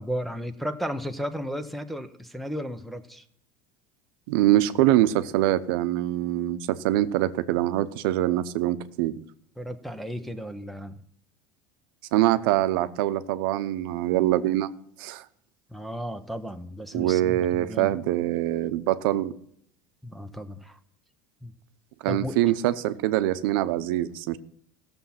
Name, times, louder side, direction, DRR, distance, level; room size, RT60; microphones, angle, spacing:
voice 1, 0.0-3.2 9.6-11.0 15.7-18.0 20.0-20.8 21.4-21.5 22.1-22.4, equal, ahead, 5 dB, 0.7 m, -34 dB
voice 2, 4.3-9.1 12.1-14.7 15.0-15.2 16.9-19.3 22.0-24.4, right 14 dB, 75° right, 12 dB, 0.8 m, -24 dB
16.0 x 7.1 x 5.8 m, 0.64 s
supercardioid pair, 145°, 12 cm